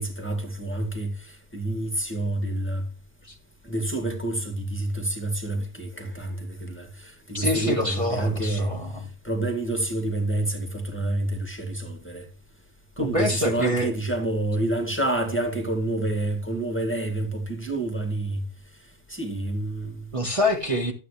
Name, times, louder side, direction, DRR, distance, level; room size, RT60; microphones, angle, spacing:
voice 1, 0.0-2.9 3.6-8.7 9.2-12.3 13.0-18.4 19.1-20.0, right 2 dB, 10° left, 1.9 m, -28 dB
voice 2, 7.3-9.1 13.0-13.9 20.1-20.9, left 1 dB, 30° right, 1.6 m, -25 dB
12.5 x 8.2 x 3.3 m
omnidirectional pair, 1.2 m